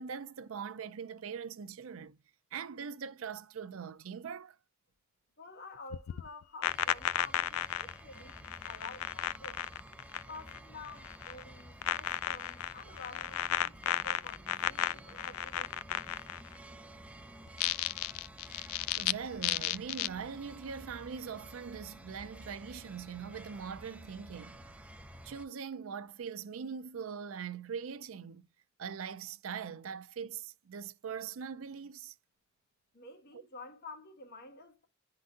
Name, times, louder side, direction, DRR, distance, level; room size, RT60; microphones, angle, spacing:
voice 1, 0.0-2.2 2.5-4.6 18.5-24.6 25.2-28.5 28.8-32.1 33.3-33.4, right 6 dB, 70° right, 0.5 m, -42 dB
voice 2, 5.4-9.6 10.3-16.1 32.9-34.8, left 3 dB, 50° left, 1.5 m, -50 dB
sound 1, 5.9-10.6 10.8-11.4 11.8-16.6 17.5-19.1 19.4-20.1, left 13 dB, 85° left, 0.3 m, -33 dB
sound 2, 6.7-25.5, right 1 dB, 5° right, 0.5 m, -52 dB
10.5 x 3.9 x 2.4 m
head